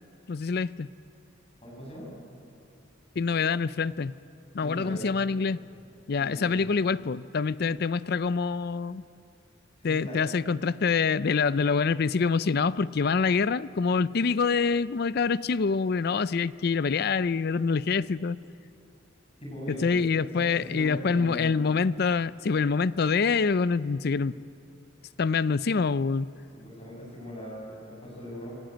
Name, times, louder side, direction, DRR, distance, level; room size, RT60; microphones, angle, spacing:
voice 1, 0.3-0.9 3.2-4.1 4.5-5.6 6.1-9.0 9.8-18.4 19.7-24.4 25.2-26.3, left 5 dB, 50° left, 17 dB, 0.4 m, -26 dB
voice 2, 1.6-2.1 4.6-5.1 6.2-6.8 9.8-10.2 19.4-21.5 26.6-28.5, equal, 30° left, -2 dB, 7.0 m, -40 dB
27.0 x 17.0 x 9.0 m, 2.7 s
head